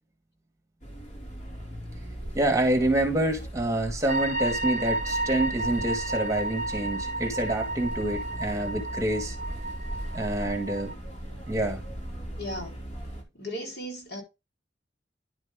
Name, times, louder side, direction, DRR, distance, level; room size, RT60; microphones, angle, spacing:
sound 1, 0.8-13.2, right 1 dB, 45° left, 2.6 m, -38 dB
voice 1, 2.3-9.3 10.1-10.9 11.5-11.8, right 1 dB, 20° right, 1.7 m, -27 dB
sound 2, 4.1-10.9, right 2 dB, 45° right, 0.7 m, -32 dB
voice 2, 12.4-12.8 13.3-14.2, equal, 65° left, 4.0 m, -36 dB
11.0 x 5.1 x 3.6 m
head